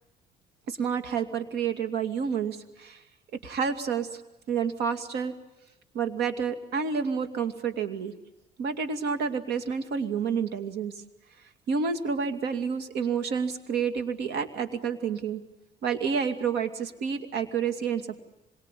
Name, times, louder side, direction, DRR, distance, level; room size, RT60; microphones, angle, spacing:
voice 1, 0.7-3.0 3.4-4.2 4.5-5.3 5.9-8.1 8.6-10.9 11.7-15.4 15.8-18.2, right 6 dB, 80° right, 7 dB, 2.6 m, -29 dB
26.0 x 23.0 x 8.4 m, 0.97 s
cardioid pair, 110°, 17 cm